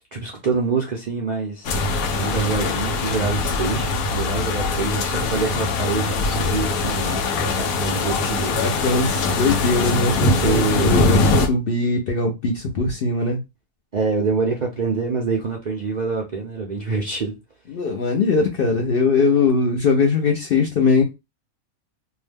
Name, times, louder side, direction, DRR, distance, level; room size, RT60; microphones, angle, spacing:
voice 1, 0.1-8.6 10.4-11.0 13.9-17.4, right 4 dB, 55° right, 0.4 m, -26 dB
sound 1, 1.6-11.5, left 3 dB, 90° left, 1.1 m, -22 dB
voice 2, 8.6-13.4 17.7-21.0, left 4 dB, 60° left, 0.6 m, -21 dB
2.7 x 2.1 x 3.3 m
omnidirectional pair, 1.5 m